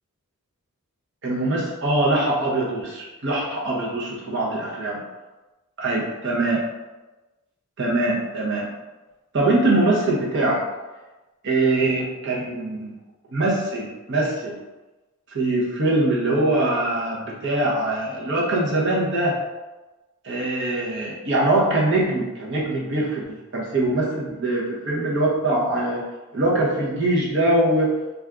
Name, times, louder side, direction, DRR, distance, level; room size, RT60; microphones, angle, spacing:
voice 1, 1.2-5.0 5.8-6.6 7.8-8.7 9.3-10.6 11.4-12.9 13.3-14.6 15.3-19.4 20.2-26.0 26.3-27.9, right 2 dB, 55° right, -3 dB, 0.8 m, -22 dB
2.5 x 2.3 x 3.4 m, 1.1 s
head